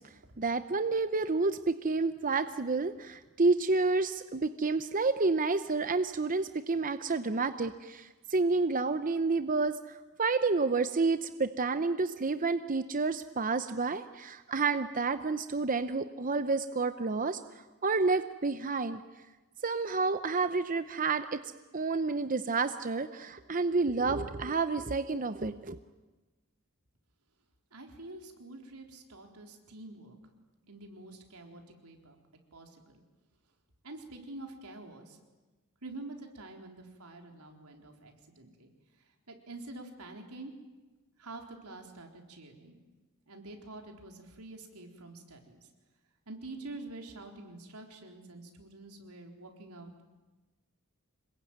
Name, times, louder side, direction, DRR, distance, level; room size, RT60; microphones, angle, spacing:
voice 1, 0.4-17.4 17.8-19.0 19.6-21.4 21.7-25.8, right 3 dB, 40° right, 10 dB, 0.8 m, -29 dB
voice 2, 27.7-30.2 30.7-32.2 32.5-33.0 33.8-35.2 35.8-38.7 39.0-40.5 41.2-42.8 43.3-45.7 46.3-49.9, right 2 dB, 90° right, 3 dB, 4.2 m, -47 dB
27.0 x 21.5 x 9.3 m, 1.2 s
head